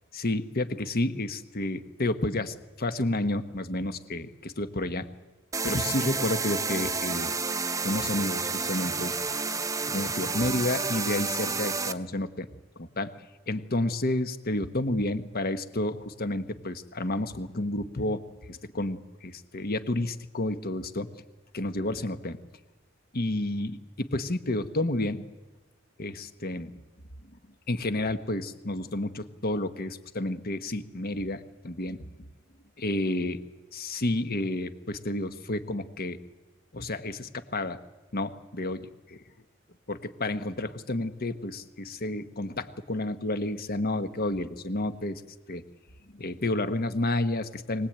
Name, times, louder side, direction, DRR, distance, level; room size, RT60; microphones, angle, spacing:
voice 1, 0.1-5.1 5.6-7.4 7.8-9.4 9.9-12.5 12.8-13.1 13.5-18.2 18.5-21.1 21.5-22.4 23.1-25.2 26.0-26.7 27.7-32.0 32.8-33.4 33.7-36.2 36.7-37.8 38.1-39.2 39.9-45.2 45.5-45.6 46.1-47.9, left 2 dB, 50° left, 10 dB, 1.3 m, -30 dB
sound 1, 5.5-11.9, right 4 dB, 15° right, 0.8 m, -30 dB
23.5 x 19.0 x 8.9 m, 1.2 s
head